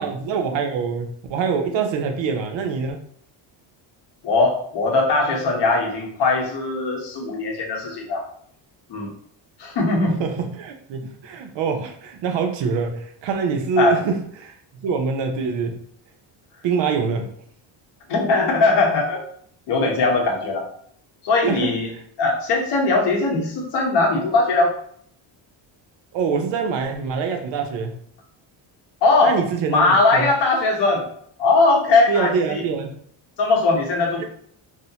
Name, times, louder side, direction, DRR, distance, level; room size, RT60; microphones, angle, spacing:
voice 1, 0.0-3.0 10.2-15.8 16.6-17.3 21.4-21.7 26.1-27.9 29.2-30.3 32.1-33.0 34.2-34.3, right 5 dB, 70° right, 4 dB, 0.6 m, -25 dB
voice 2, 4.2-8.3 8.9-9.1 9.6-10.2 13.8-14.0 18.1-19.2 19.7-20.7 21.2-21.9 22.2-24.7 29.0-29.4 29.7-31.1 31.4-32.6 33.4-34.2, left 3 dB, 60° left, -1 dB, 0.9 m, -20 dB
2.7 x 2.0 x 2.7 m, 0.63 s
cardioid pair, 145°, 47 cm